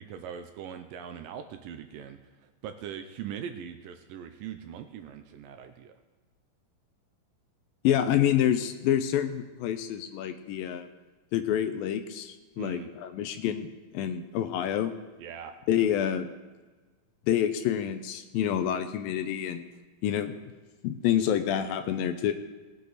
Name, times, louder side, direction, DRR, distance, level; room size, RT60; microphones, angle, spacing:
voice 1, 0.0-5.9 12.6-12.9 15.2-15.6, right 8 dB, 75° right, 7 dB, 2.1 m, -41 dB
voice 2, 7.8-10.9 11.3-13.7 13.9-14.9 15.7-16.3 17.3-19.6 20.0-20.3 20.8-22.3, left 10 dB, 80° left, 9 dB, 2.3 m, -27 dB
18.5 x 8.5 x 4.1 m, 1.3 s
omnidirectional pair, 4.4 m